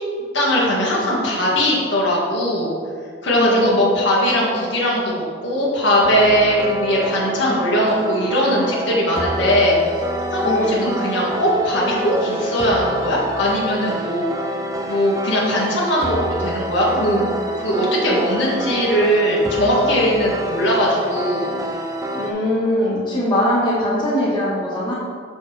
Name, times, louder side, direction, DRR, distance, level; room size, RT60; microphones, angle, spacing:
voice 1, 0.3-2.8 3.2-9.8 10.3-14.3 14.9-17.2 17.6-21.5, equal, 85° left, -6 dB, 1.8 m, -19 dB
voice 2, 3.3-3.8 10.4-10.9 17.0-17.2 22.1-24.9, left 1 dB, 25° left, -7 dB, 1.6 m, -21 dB
sound 1, 6.0-22.3, right 1 dB, 20° right, 0.4 m, -27 dB
6.9 x 6.2 x 3.3 m, 2.1 s
head